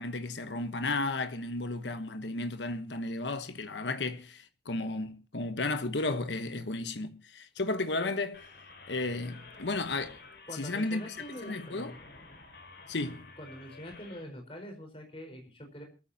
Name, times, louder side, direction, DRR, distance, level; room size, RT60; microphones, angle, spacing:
voice 1, 0.0-8.4 8.9-10.2 10.5-11.0 11.4-11.9 12.9-13.3, left 2 dB, 85° left, 1.1 m, -33 dB
sound 1, 8.3-14.2, left 3 dB, 60° left, 4.3 m, -51 dB
voice 2, 10.5-12.0 13.4-15.8, equal, 30° left, 4.4 m, -44 dB
26.5 x 14.0 x 2.8 m
head